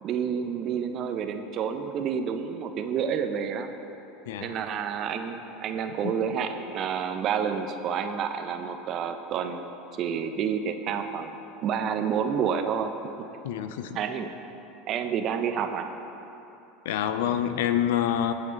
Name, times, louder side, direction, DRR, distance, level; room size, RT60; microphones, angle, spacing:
voice 1, 0.0-3.7 4.4-9.7 10.0-11.4 11.6-12.9 13.9-14.3 14.9-15.9, right 7 dB, 50° right, 7 dB, 1.0 m, -29 dB
voice 2, 13.4-14.0 16.8-18.3, left 10 dB, 75° left, 10 dB, 0.7 m, -27 dB
20.5 x 8.3 x 4.1 m, 3.0 s
hypercardioid pair, 90°, 0 cm